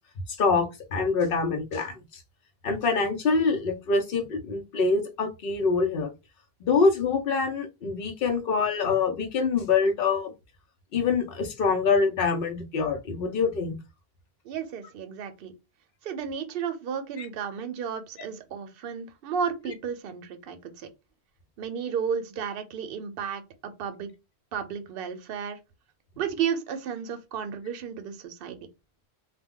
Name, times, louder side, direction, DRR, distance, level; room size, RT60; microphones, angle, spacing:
voice 1, 0.3-2.2 2.6-6.1 6.6-10.3 10.9-13.8 17.2-17.3, left 4 dB, 60° left, 0.8 m, -25 dB
voice 2, 14.4-15.5 16.0-20.9 21.6-24.1 24.5-25.6 26.2-28.6, right 7 dB, 65° right, 0.7 m, -33 dB
2.2 x 2.2 x 3.6 m
omnidirectional pair, 1.1 m